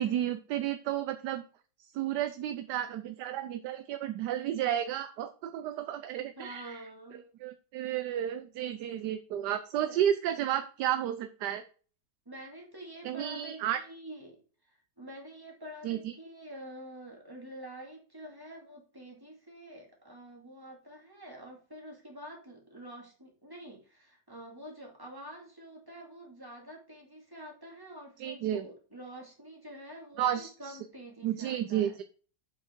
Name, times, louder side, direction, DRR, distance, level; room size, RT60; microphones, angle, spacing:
voice 1, 0.0-1.4 1.9-6.8 7.4-11.6 13.0-13.8 15.8-16.1 28.2-28.6 30.2-30.8 31.2-32.0, right 11 dB, 75° right, 10 dB, 1.2 m, -32 dB
voice 2, 6.4-7.2 9.8-10.0 12.3-14.4 14.6-32.0, right 1 dB, 10° right, 0 dB, 2.5 m, -47 dB
7.7 x 6.5 x 4.4 m, 0.39 s
omnidirectional pair, 1.9 m